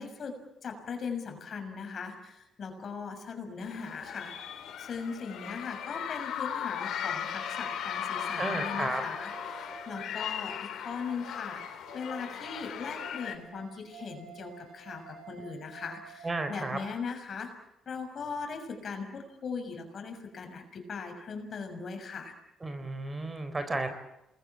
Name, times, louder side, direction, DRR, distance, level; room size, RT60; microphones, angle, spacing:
voice 1, 0.0-4.3 4.8-11.6 11.9-17.5 17.8-22.3, left 5 dB, 50° left, 5 dB, 6.7 m, -39 dB
sound 1, 3.6-13.4, left 9 dB, 75° left, 3.1 m, -37 dB
sound 2, 6.9-16.2, right 5 dB, 75° right, 4.0 m, -50 dB
voice 2, 8.4-9.0 16.2-16.8 22.6-23.9, right 2 dB, 25° right, 9 dB, 4.1 m, -33 dB
28.0 x 21.0 x 8.8 m, 0.87 s
cardioid pair, 90°, 0 cm